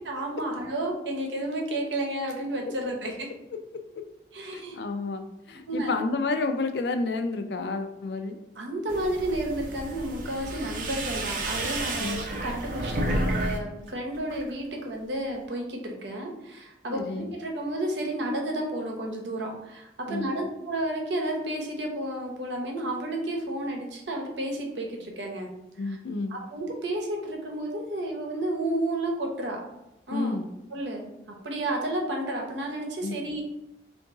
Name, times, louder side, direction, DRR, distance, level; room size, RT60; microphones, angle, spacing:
voice 1, 0.1-3.3 4.3-4.8 5.7-5.9 8.6-25.5 25.8-26.0 26.3-29.6 30.1-30.3 30.7-31.1 31.4-33.4, right 1 dB, 85° right, 1 dB, 0.8 m, -31 dB
voice 2, 4.5-5.2 5.5-8.4 12.0-12.2 16.9-17.3 20.1-20.3 25.8-26.3 30.1-30.5 33.0-33.1, left 3 dB, 70° left, 7 dB, 0.4 m, -30 dB
Flowing water and flow though canal, 8.9-13.6 13.9-14.5, right 1 dB, 50° right, 0.5 m, -31 dB
3.8 x 2.6 x 3.6 m, 0.89 s
head